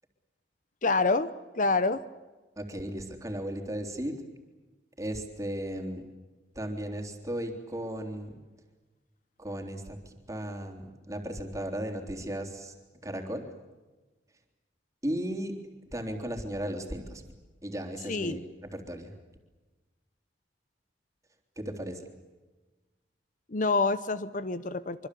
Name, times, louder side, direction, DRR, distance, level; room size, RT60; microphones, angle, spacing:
voice 1, 0.8-1.3 1.5-2.0 18.1-18.4 23.5-25.1, left 3 dB, 45° left, 14 dB, 0.8 m, -27 dB
voice 2, 2.6-4.2 5.0-6.1 6.6-8.4 9.4-12.8 13.0-13.5 15.0-15.6 15.9-17.2 17.6-19.2 21.6-22.0, right 1 dB, 20° right, 4 dB, 3.5 m, -35 dB
25.5 x 25.0 x 8.5 m, 1.2 s
head